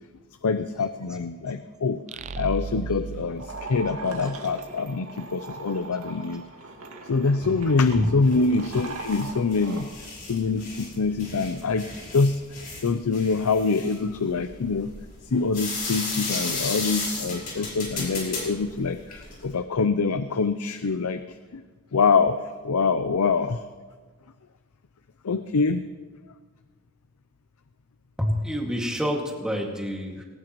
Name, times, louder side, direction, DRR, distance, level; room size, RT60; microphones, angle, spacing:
voice 1, 0.4-2.0 2.4-6.4 7.1-9.9 10.3-12.4 12.8-14.9 15.3-21.6 21.9-23.6 25.2-25.8, left 4 dB, 85° left, 11 dB, 0.6 m, -25 dB
sound 1, 2.1-4.7, right 4 dB, 30° right, 0.4 m, -36 dB
sound 2, 3.3-9.9, right 3 dB, 80° right, 2.1 m, -40 dB
sound 3, 8.2-19.5, left 3 dB, 40° left, 5.0 m, -34 dB
voice 2, 28.2-30.2, equal, 5° right, -1 dB, 2.1 m, -27 dB
19.5 x 18.5 x 3.1 m, 1.4 s
head